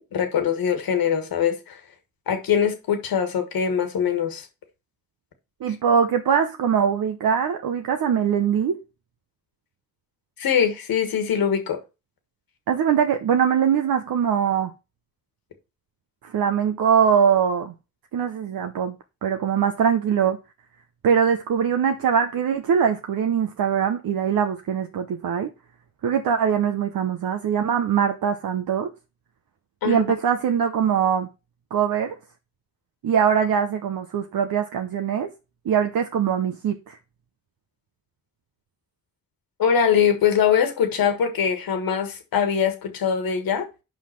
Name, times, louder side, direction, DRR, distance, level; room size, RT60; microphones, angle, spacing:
voice 1, 0.1-1.8 2.3-4.5 10.4-11.8 29.8-30.0 39.6-43.7, left 7 dB, 85° left, 1.6 m, -22 dB
voice 2, 5.6-8.8 12.7-14.7 16.2-17.7 18.1-18.9 19.2-20.4 21.0-25.5 26.0-28.9 29.8-31.3 31.7-32.2 33.0-35.3 35.6-37.0, right 7 dB, 80° right, 0.8 m, -22 dB
5.7 x 5.4 x 5.8 m
supercardioid pair, 45°, 34 cm